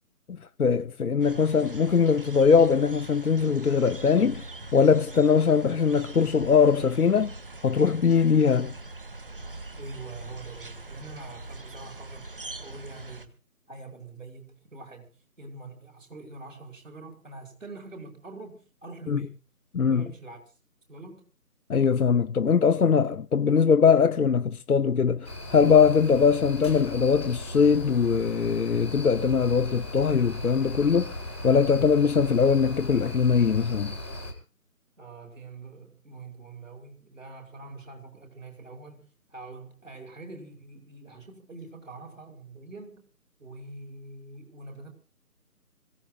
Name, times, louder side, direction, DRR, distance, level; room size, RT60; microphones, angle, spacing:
voice 1, 0.6-4.4 4.7-7.3 7.6-8.7 19.1-19.3 19.7-20.0 21.7-31.1 31.4-33.9, left 6 dB, 70° left, 0.7 m, -21 dB
sound 1, 1.2-13.3, right 2 dB, 35° right, 1.3 m, -42 dB
voice 2, 9.8-13.3 13.7-15.1 15.4-19.4 19.9-20.4 20.9-21.2 35.0-43.0 43.4-44.9, right 3 dB, 55° right, 5.4 m, -44 dB
sound 2, 25.2-34.3, left 1 dB, 5° left, 1.1 m, -37 dB
26.0 x 16.0 x 2.3 m
figure-of-eight pair, 160°, 47 cm